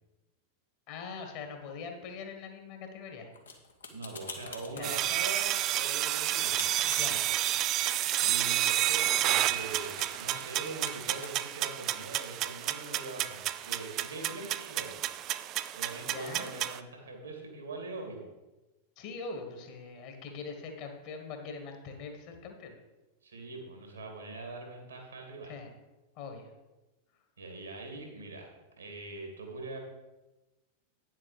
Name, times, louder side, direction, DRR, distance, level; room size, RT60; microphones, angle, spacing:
voice 1, 0.9-3.3 4.7-5.0 6.9-7.3 16.1-16.6 19.0-22.7 25.4-25.7 26.2-26.5, left 4 dB, 45° left, 5 dB, 1.8 m, -42 dB
sound 1, 3.3-11.3, left 5 dB, 70° left, 1.4 m, -45 dB
voice 2, 3.9-6.9 8.2-14.9 15.7-18.3 23.2-25.5 27.4-28.5 28.8-29.8, right 3 dB, 75° right, 2 dB, 2.5 m, -42 dB
sound 2, 4.8-16.8, right 13 dB, 35° right, 0.4 m, -30 dB
9.5 x 7.5 x 5.0 m, 1.1 s
figure-of-eight pair, 90°, 0 cm